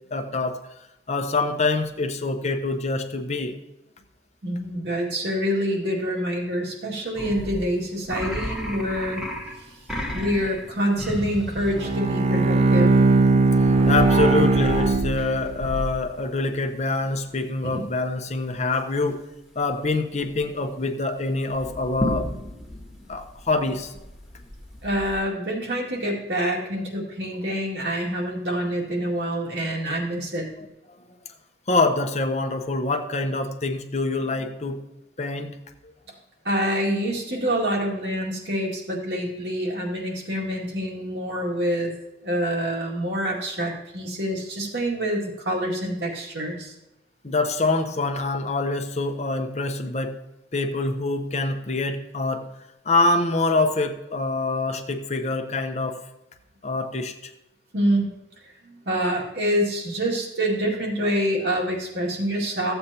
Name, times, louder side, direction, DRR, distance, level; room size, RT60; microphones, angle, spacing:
voice 1, 0.1-0.6 1.1-3.6 13.9-19.2 19.6-22.3 23.1-24.0 31.7-34.8 35.2-35.6 47.2-50.2 50.5-52.4 52.8-56.0 56.6-57.3, left 3 dB, 40° left, 7 dB, 0.7 m, -25 dB
voice 2, 4.4-9.3 9.7-9.8 10.1-12.9 17.7-17.9 24.8-30.5 36.4-41.9 42.2-46.7 57.7-58.2 58.4-62.7, equal, 80° right, -2 dB, 2.2 m, -26 dB
sound 1, 7.1-12.3 13.5-16.2 19.7-19.9 20.2-20.6 21.5-25.2, left 1 dB, ahead, 1.2 m, -33 dB
Bowed string instrument, 11.7-15.8, right 3 dB, 35° right, 0.4 m, -19 dB
14.0 x 7.9 x 2.9 m, 0.90 s
head